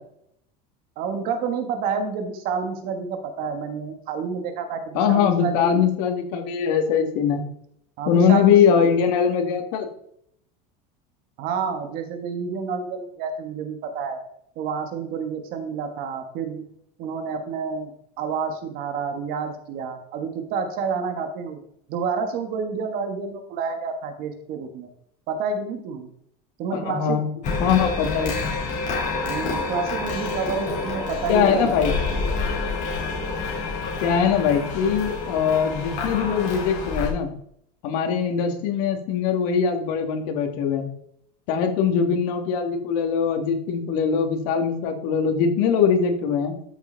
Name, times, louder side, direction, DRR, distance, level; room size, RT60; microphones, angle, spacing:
voice 1, 1.0-5.9 8.0-8.6 11.4-14.2 14.6-16.6 17.0-21.6 21.9-24.9 25.3-26.1 26.6-27.2 29.3-31.8, right 5 dB, 50° right, 7 dB, 1.5 m, -29 dB
voice 2, 4.9-7.4 8.1-9.9 26.7-27.3 27.6-28.3 31.3-31.9 34.0-37.3 37.8-40.9 41.5-46.5, left 7 dB, 70° left, 4 dB, 2.2 m, -21 dB
sound 1, 27.4-37.1, left 3 dB, 40° left, 3.7 m, -28 dB
13.0 x 6.9 x 4.0 m, 0.70 s
cardioid pair, 160°, 20 cm